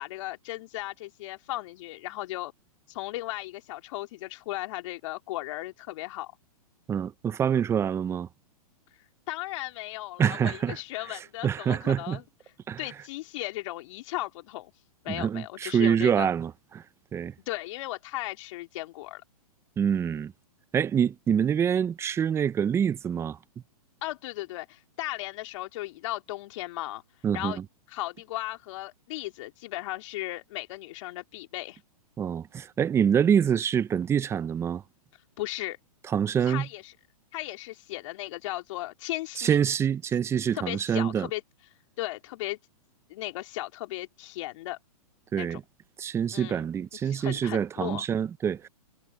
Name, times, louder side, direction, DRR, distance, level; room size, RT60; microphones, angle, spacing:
voice 1, 0.0-2.5 2.9-6.3 9.3-12.2 12.8-14.7 15.0-16.3 17.5-19.2 24.0-27.0 27.3-27.6 27.9-31.8 35.4-35.8 36.4-36.9 37.3-39.6 40.5-41.4 42.0-42.6 43.1-44.8 45.4-45.6 46.3-46.6 47.0-48.0, left 17 dB, 55° left, 3.3 m, -36 dB
voice 2, 6.9-8.3 10.2-10.8 11.1-12.2 12.7-12.8 15.1-16.8 17.1-17.3 19.8-20.3 20.7-23.4 27.2-27.6 32.2-34.8 36.1-36.7 39.4-41.3 45.3-45.6 46.0-48.7, right 8 dB, 15° right, 0.6 m, -26 dB
hypercardioid pair, 130°, 20 cm